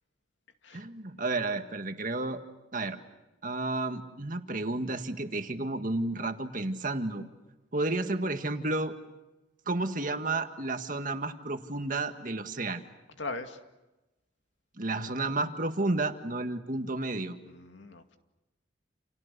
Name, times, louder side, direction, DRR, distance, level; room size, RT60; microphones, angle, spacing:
voice 1, 0.7-2.4 2.7-3.0 3.4-7.2 7.7-8.9 9.7-12.8 14.8-17.4, right 2 dB, 45° right, 7 dB, 1.8 m, -31 dB
voice 2, 13.2-13.6 17.5-18.2, left 3 dB, 75° left, 6 dB, 2.3 m, -39 dB
29.5 x 29.0 x 6.8 m, 1.0 s
head